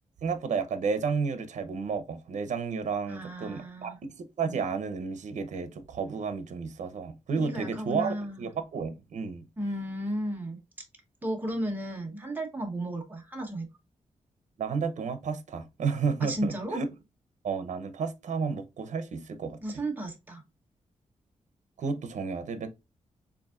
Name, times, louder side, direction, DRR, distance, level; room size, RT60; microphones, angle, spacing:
voice 1, 0.2-9.4 14.6-16.9 17.4-19.8 21.8-22.7, right 5 dB, 70° right, 0.8 m, -32 dB
voice 2, 3.1-4.0 7.4-8.5 9.6-10.6 11.2-13.7 16.2-16.8 19.6-20.4, right 1 dB, 15° right, 1.1 m, -34 dB
7.0 x 2.7 x 2.5 m
wide cardioid pair, 155°, 13 cm